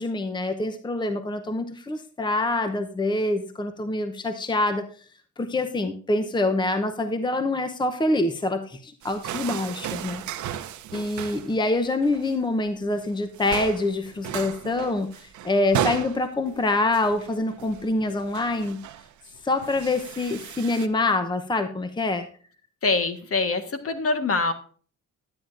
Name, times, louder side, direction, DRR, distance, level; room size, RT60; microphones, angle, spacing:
voice 1, 0.0-4.9 5.4-10.2 10.9-18.8 19.4-22.3, left 2 dB, 15° left, 8 dB, 0.8 m, -25 dB
sound 1, 9.0-11.6 11.9-12.4 12.8-13.1 13.3-20.9, right 10 dB, 75° right, 0.9 m, -35 dB
voice 2, 22.8-24.5, left 3 dB, 50° left, 9 dB, 1.4 m, -24 dB
12.5 x 8.9 x 2.6 m, 0.43 s
cardioid pair, 90°, 30 cm